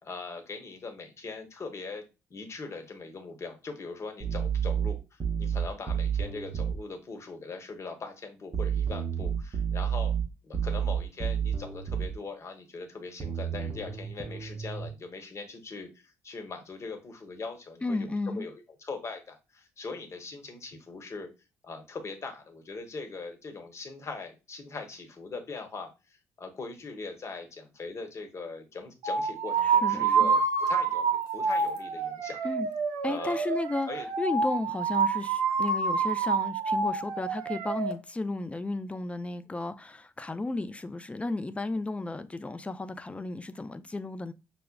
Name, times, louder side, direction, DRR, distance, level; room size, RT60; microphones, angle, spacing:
voice 1, 0.0-2.0 2.3-10.1 10.4-21.3 21.6-30.4 30.7-32.4 33.0-33.6 33.9-34.1, left 4 dB, 40° left, 1.0 m, -41 dB
sound 1, 4.2-6.8 8.5-12.2 13.2-14.9, right 8 dB, 40° right, 0.7 m, -30 dB
voice 2, 17.8-18.5 29.6-30.3 32.4-32.7 33.0-44.3, left 2 dB, 15° left, 0.4 m, -33 dB
sound 2, 29.0-37.9, right 5 dB, 75° right, 0.6 m, -27 dB
5.6 x 2.0 x 2.2 m
hypercardioid pair, 55°, 7 cm